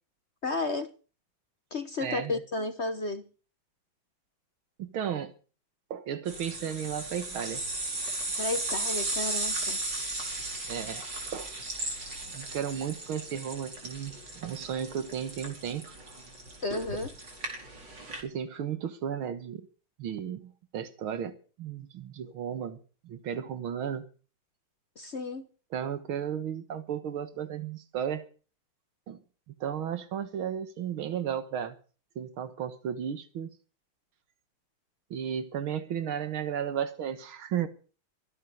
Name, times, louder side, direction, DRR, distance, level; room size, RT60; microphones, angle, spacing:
voice 1, 0.4-0.9 1.7-3.2 8.4-9.8 16.6-17.1 25.0-25.5, left 3 dB, 40° left, 1.2 m, -32 dB
voice 2, 2.0-2.4 4.8-5.3 5.9-7.6 10.7-11.5 12.3-15.9 18.2-19.6 20.0-22.8 23.0-24.0 25.7-28.2 29.1-29.2 29.6-31.8 32.2-33.5 35.1-37.7, right 8 dB, 90° right, 2.2 m, -34 dB
sound 1, 6.3-18.2, right 2 dB, 60° right, 5.2 m, -36 dB
23.0 x 9.4 x 5.3 m
omnidirectional pair, 2.2 m